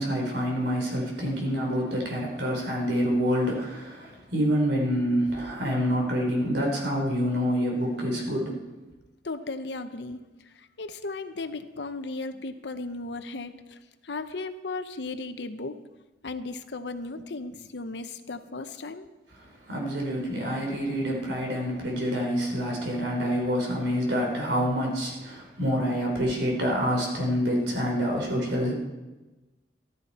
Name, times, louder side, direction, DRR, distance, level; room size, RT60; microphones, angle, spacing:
voice 1, 0.0-8.6 19.7-28.7, equal, 85° right, 0 dB, 3.8 m, -27 dB
voice 2, 9.2-10.2 10.5-15.8 16.2-19.1, left 3 dB, 75° left, 10 dB, 0.8 m, -36 dB
14.0 x 13.5 x 4.2 m, 1.1 s
head